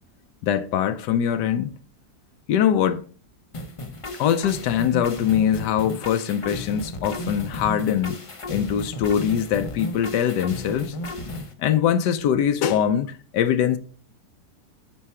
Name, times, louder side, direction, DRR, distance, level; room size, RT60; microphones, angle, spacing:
voice 1, 0.4-1.7 2.5-3.0 4.2-11.0 11.6-13.8, left 9 dB, 90° left, 1.3 m, -22 dB
sound 1, 3.5-11.5, left 1 dB, 50° left, 0.4 m, -34 dB
8.8 x 4.6 x 4.3 m
omnidirectional pair, 1.8 m